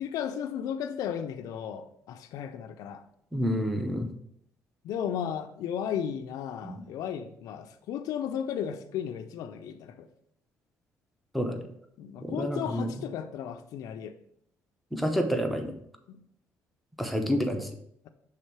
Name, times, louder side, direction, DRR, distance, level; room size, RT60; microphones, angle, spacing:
voice 1, 0.0-3.0 4.8-10.1 12.0-14.1 16.1-16.2, left 8 dB, 80° left, 7 dB, 0.5 m, -34 dB
voice 2, 3.3-4.1 6.6-6.8 11.3-11.6 12.2-12.9 14.9-15.7 17.0-17.7, equal, ahead, 5 dB, 0.7 m, -28 dB
6.6 x 3.5 x 4.6 m, 0.70 s
cardioid pair, 115°, 6 cm